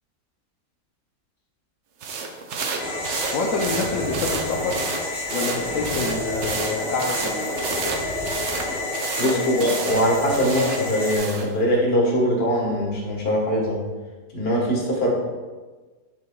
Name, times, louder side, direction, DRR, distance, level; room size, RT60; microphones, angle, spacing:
sound 1, 2.0-11.5, right 4 dB, 60° right, 0.9 m, -31 dB
sound 2, 2.8-11.2, left 2 dB, ahead, 0.9 m, -29 dB
voice 1, 3.3-4.9 5.3-8.0 9.2-9.7, left 3 dB, 70° left, 0 dB, 1.0 m, -28 dB
voice 2, 9.2-13.8 14.3-15.1, equal, 45° left, -1 dB, 1.4 m, -22 dB
6.7 x 6.6 x 2.3 m, 1.3 s
omnidirectional pair, 1.5 m